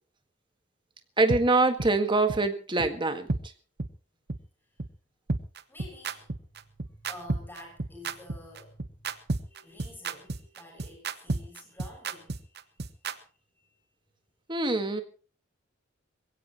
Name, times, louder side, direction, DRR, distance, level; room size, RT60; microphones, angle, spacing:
voice 1, 1.2-3.3 14.5-15.0, right 3 dB, 25° right, 7 dB, 1.8 m, -24 dB
sound 1, 1.3-1.4 1.8-1.9 2.3-2.4 2.8-2.9 3.3-3.4 3.8-3.9 4.3-4.4 4.8-4.9 5.3-13.1, right 3 dB, 55° right, 1.1 m, -31 dB
voice 2, 5.7-6.4 6.8-13.3 13.6-13.7, left 1 dB, 10° left, 0 dB, 6.9 m, -50 dB
22.0 x 17.0 x 3.1 m, 0.37 s
head